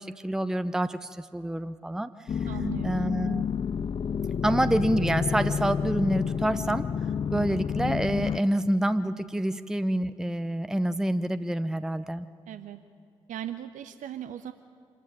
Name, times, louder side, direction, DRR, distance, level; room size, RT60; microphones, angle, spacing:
voice 1, 0.0-2.1 2.8-3.4 4.4-6.9 7.3-12.3, right 1 dB, 5° right, 12 dB, 0.7 m, -27 dB
sound 1, 2.3-8.4, left 7 dB, 35° left, 0.4 m, -29 dB
voice 2, 2.5-3.0 12.5-12.8 13.3-14.5, right 11 dB, 60° right, 10 dB, 0.7 m, -38 dB
26.0 x 13.0 x 8.6 m, 2.4 s
hypercardioid pair, 40°, 15 cm